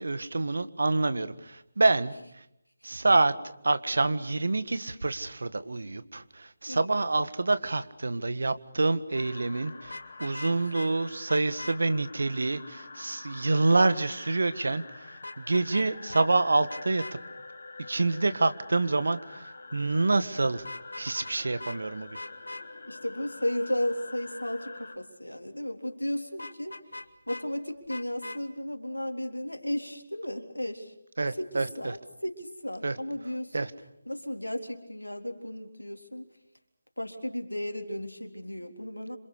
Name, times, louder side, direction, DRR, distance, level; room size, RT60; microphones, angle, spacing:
voice 1, 0.0-2.4 2.8-3.3 3.6-17.0 17.9-20.6 21.0-22.2 31.2-32.0 32.8-33.0 33.5-33.7, right 3 dB, 65° right, 13 dB, 1.6 m, -27 dB
sound 1, 9.1-25.0, left 3 dB, 50° left, 4.3 m, -46 dB
Vehicle horn car horn honking, 9.8-10.9 11.3-11.8 15.2-15.9 16.1-16.3 16.7-17.1 20.6-21.3 21.6-21.8 22.1-22.6 26.4-27.4 27.9-28.4, left 2 dB, 75° left, 2.2 m, -40 dB
voice 2, 22.9-26.8 27.3-30.9 31.4-33.7 34.1-36.3 37.0-39.2, left 1 dB, 90° left, 4 dB, 3.8 m, -34 dB
28.0 x 26.5 x 6.6 m, 0.81 s
figure-of-eight pair, 150°, 0 cm